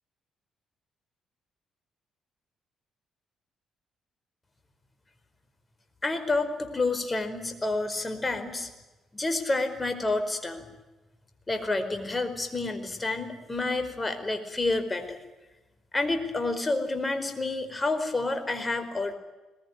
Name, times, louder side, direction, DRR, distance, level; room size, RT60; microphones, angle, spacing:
voice 1, 6.0-6.5 6.7-8.7 9.1-10.7 11.5-15.2 15.9-19.1, left 2 dB, 20° left, 8 dB, 4.7 m, -29 dB
21.5 x 21.0 x 9.6 m, 1.1 s
cardioid pair, 90°, 0 cm